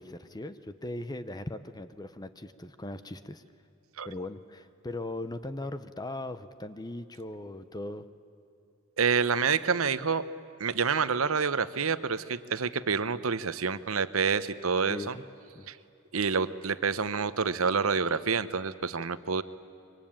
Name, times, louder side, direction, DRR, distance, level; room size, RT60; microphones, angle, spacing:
voice 1, 0.0-3.4 4.0-8.1 14.9-15.2 15.5-15.7, left 1 dB, 20° left, 12 dB, 0.8 m, -39 dB
voice 2, 9.0-10.3 10.6-15.2 15.7-15.8 16.1-19.4, right 5 dB, 75° right, 14 dB, 0.9 m, -28 dB
26.0 x 24.0 x 8.9 m, 2.7 s
head